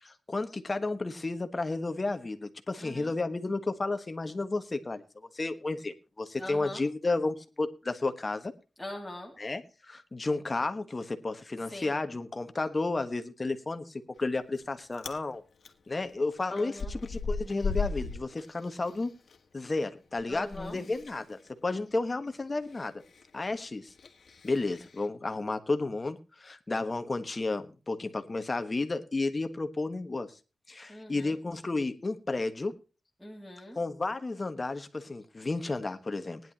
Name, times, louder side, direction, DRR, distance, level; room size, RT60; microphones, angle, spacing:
voice 1, 0.0-5.0 5.3-8.5 9.4-15.4 15.9-19.1 19.5-23.0 23.3-23.9 24.4-30.3 30.7-32.7 33.7-36.4, left 3 dB, 30° left, 9 dB, 1.3 m, -32 dB
voice 2, 2.8-3.1 6.4-6.8 8.8-9.3 11.7-11.9 16.5-16.9 20.3-20.8 30.9-31.3 33.2-33.8, left 1 dB, 5° left, -2 dB, 2.4 m, -42 dB
Chewing mastication, 14.2-14.6 14.9-15.2 15.6-19.4 19.7-25.1, left 4 dB, 65° left, 1.6 m, -38 dB
19.0 x 10.5 x 2.9 m, 0.31 s
wide cardioid pair, 125°, 0 cm